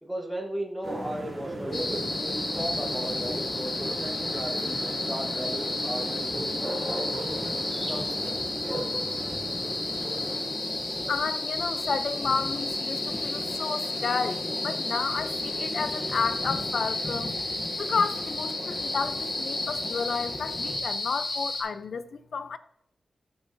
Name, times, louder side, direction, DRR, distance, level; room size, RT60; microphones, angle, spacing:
voice 1, 0.0-7.1 7.9-8.9, right 1 dB, ahead, 1.4 m, -36 dB
sound 1, 0.8-10.5, right 1 dB, 25° right, 2.7 m, -37 dB
sound 2, 1.7-21.6, left 2 dB, 50° left, 2.7 m, -32 dB
sound 3, 1.7-20.8, left 1 dB, 15° left, 1.0 m, -39 dB
voice 2, 11.1-17.3 17.8-22.6, left 5 dB, 70° left, 0.6 m, -31 dB
14.5 x 6.9 x 2.7 m
wide cardioid pair, 140°, 0 cm